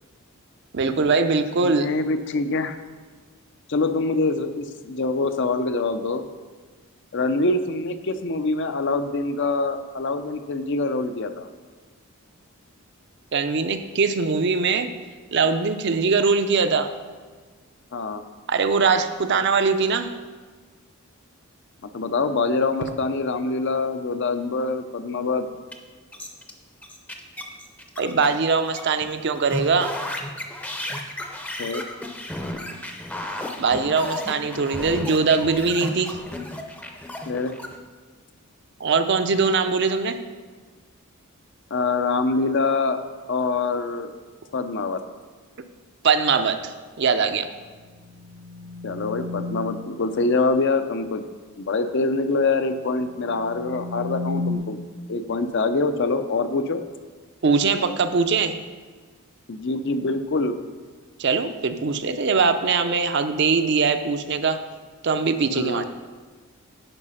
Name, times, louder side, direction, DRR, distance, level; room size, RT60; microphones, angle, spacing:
voice 1, 0.7-1.9 13.3-14.9 15.3-16.9 18.5-20.1 28.0-29.9 33.6-36.2 38.8-40.2 46.0-47.5 57.4-58.6 61.2-64.6 65.0-65.9, right 4 dB, 50° right, 9 dB, 0.5 m, -21 dB
voice 2, 1.6-2.8 3.7-6.2 7.1-11.5 17.9-18.2 21.8-25.5 31.6-31.8 37.3-37.5 41.7-43.0 43.3-44.1 44.5-45.0 48.8-51.2 51.6-54.8 55.1-56.8 59.5-60.6 65.5-65.9, left 3 dB, 55° left, 9 dB, 0.5 m, -25 dB
sound 1, 25.7-25.8 26.1-26.5 26.8-29.0 29.4-37.8, left 1 dB, 5° left, 0.6 m, -33 dB
sound 2, 47.7-50.0 53.0-54.6, left 3 dB, 80° right, 1.7 m, -33 dB
9.9 x 4.9 x 5.6 m, 1.5 s
head